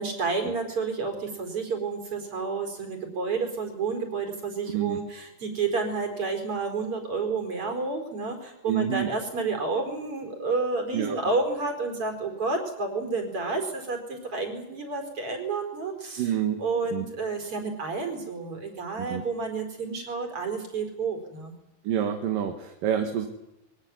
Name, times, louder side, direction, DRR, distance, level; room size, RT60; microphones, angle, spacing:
voice 1, 0.0-16.3 16.6-21.5, right 4 dB, 35° right, 5 dB, 5.2 m, -30 dB
voice 2, 4.7-5.0 8.7-9.1 10.9-11.2 16.2-16.6 16.9-17.0 19.0-19.2 21.8-23.3, right 9 dB, 60° right, 5 dB, 3.1 m, -27 dB
23.0 x 18.5 x 9.7 m, 0.86 s
omnidirectional pair, 4.8 m